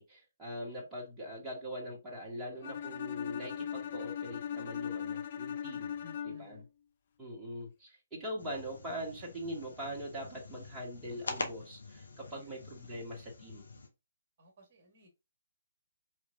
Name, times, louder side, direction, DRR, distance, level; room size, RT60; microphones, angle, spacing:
voice 1, 0.0-6.0 6.2-6.6 7.2-13.6, equal, 10° right, 1.5 m, -42 dB
voice 2, 2.5-2.9 6.0-6.7 12.2-12.7 14.4-15.1, left 2 dB, 40° right, 1.6 m, -57 dB
Bowed string instrument, 2.6-6.6, left 8 dB, 40° left, 0.5 m, -39 dB
sound 1, 8.4-13.9, left 3 dB, 65° left, 1.0 m, -45 dB
5.1 x 3.2 x 2.7 m
figure-of-eight pair, 135°, 0 cm